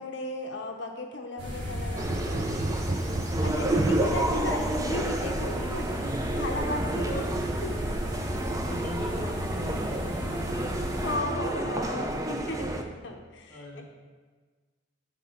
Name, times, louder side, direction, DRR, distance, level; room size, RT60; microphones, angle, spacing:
voice 1, 0.0-2.9 3.4-7.3 7.6-7.8 11.0-13.8, left 2 dB, 60° left, 3 dB, 0.6 m, -35 dB
sound 1, 1.4-11.2, equal, 65° right, 2.6 m, -34 dB
sound 2, 2.0-12.8, right 2 dB, 15° right, 0.5 m, -30 dB
voice 2, 3.7-4.1 6.8-7.3 8.7-12.4 12.7-12.9 13.5-13.8, left 1 dB, 5° left, -1 dB, 1.2 m, -42 dB
10.0 x 3.7 x 5.7 m, 1.4 s
head